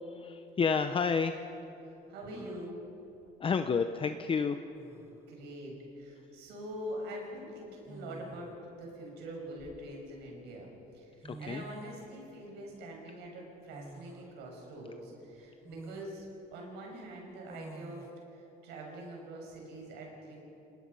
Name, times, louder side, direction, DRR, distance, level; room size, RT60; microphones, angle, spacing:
voice 1, 0.1-1.4 3.4-4.6 11.2-11.6, left 5 dB, 30° left, 8 dB, 0.8 m, -30 dB
voice 2, 2.1-2.8 5.1-16.3 16.5-20.4, right 1 dB, 85° right, 0 dB, 6.5 m, -44 dB
sound 1, 2.3-2.8 4.3-4.4 4.7-5.2 6.6-6.8 7.9-8.6 9.3-10.3 11.0-11.1 11.2-12.1 13.7-14.3 14.8-14.9 15.6-16.1 17.5-18.1, right 3 dB, 15° right, 0.8 m, -49 dB
29.5 x 19.0 x 5.6 m, 3.0 s
cardioid pair, 110°, 17 cm